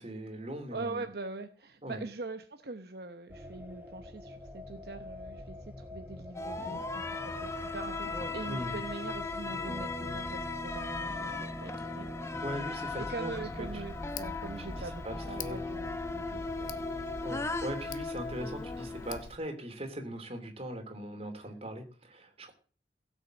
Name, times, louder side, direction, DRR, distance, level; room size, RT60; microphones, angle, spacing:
voice 1, 0.0-1.0 1.8-2.0 8.5-8.7 12.4-13.3 14.8-15.6 17.2-22.5, right 1 dB, 35° right, 5 dB, 3.1 m, -40 dB
voice 2, 0.7-12.1 13.0-16.9, right 3 dB, 60° right, 7 dB, 0.9 m, -43 dB
sound 1, 3.3-17.3, left 1 dB, 10° right, 1.4 m, -45 dB
sound 2, 6.3-19.2, left 3 dB, 15° left, 0.9 m, -38 dB
Tick, 13.3-19.4, left 4 dB, 50° left, 1.0 m, -46 dB
16.5 x 6.4 x 7.9 m, 0.39 s
head